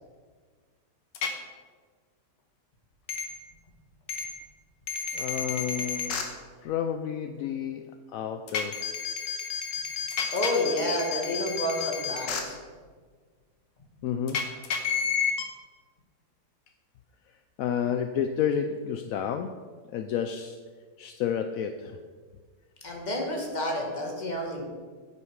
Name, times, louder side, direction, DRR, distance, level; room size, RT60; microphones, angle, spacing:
sound 1, 1.2-1.3 3.1-3.3 4.1-4.3 4.9-6.2 8.5-12.4 14.3-15.4, left 7 dB, 90° left, 1.8 m, -30 dB
voice 1, 5.1-6.2 6.6-8.8 14.0-14.4 17.6-19.6 19.9-20.6 21.0-22.0, left 8 dB, 70° left, 7 dB, 0.8 m, -30 dB
voice 2, 10.3-12.6 22.8-24.6, left 1 dB, 25° left, 0 dB, 1.7 m, -30 dB
9.3 x 8.5 x 4.7 m, 1.5 s
omnidirectional pair, 1.9 m